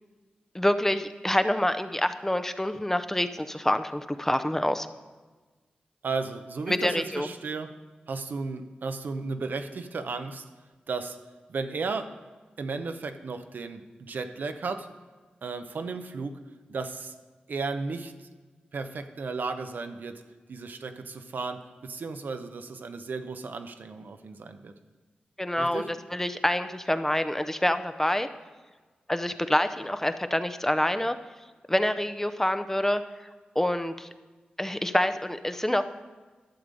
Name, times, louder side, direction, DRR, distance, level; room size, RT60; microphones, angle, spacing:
voice 1, 0.5-4.9 6.7-7.3 25.4-28.3 29.1-31.2 31.7-33.0 33.6-34.1 34.6-35.8, left 1 dB, 10° left, 10 dB, 0.6 m, -26 dB
voice 2, 6.0-7.7 8.1-10.4 10.9-11.2 11.5-12.1 12.6-14.9 15.4-16.4 16.7-17.1 17.5-18.1 18.7-20.2 20.5-24.7 25.6-25.9, right 4 dB, 70° right, 7 dB, 0.7 m, -34 dB
12.0 x 6.8 x 5.3 m, 1.3 s
cardioid pair, 45°, 3 cm